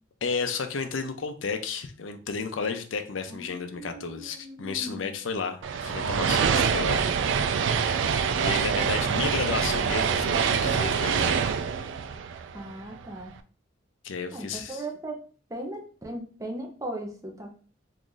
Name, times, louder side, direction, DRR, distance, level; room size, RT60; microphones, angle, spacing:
voice 1, 0.2-7.1 7.4-7.9 8.3-11.5 14.0-14.9, left 5 dB, 85° left, 8 dB, 0.5 m, -32 dB
voice 2, 3.3-5.1 12.5-13.3 14.3-15.2 15.5-17.5, right 1 dB, 15° right, 1 dB, 0.6 m, -38 dB
sound 1, 5.6-13.1, right 6 dB, 80° right, 0.3 m, -25 dB
3.0 x 2.5 x 3.8 m, 0.41 s
head